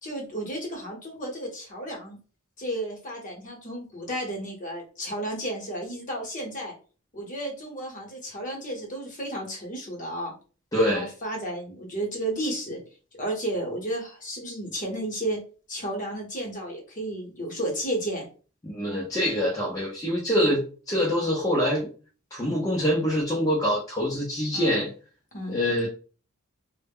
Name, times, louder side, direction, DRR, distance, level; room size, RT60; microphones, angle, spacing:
voice 1, 0.0-2.2 2.6-6.7 7.1-10.3 10.9-12.8 13.2-15.4 15.7-18.2 24.5-24.8 25.3-25.6, right 1 dB, 40° left, 0 dB, 0.8 m, -33 dB
voice 2, 10.7-11.1 18.6-21.9 22.3-24.9 25.5-25.9, equal, 15° left, -4 dB, 0.5 m, -25 dB
2.0 x 2.0 x 3.5 m, 0.37 s
head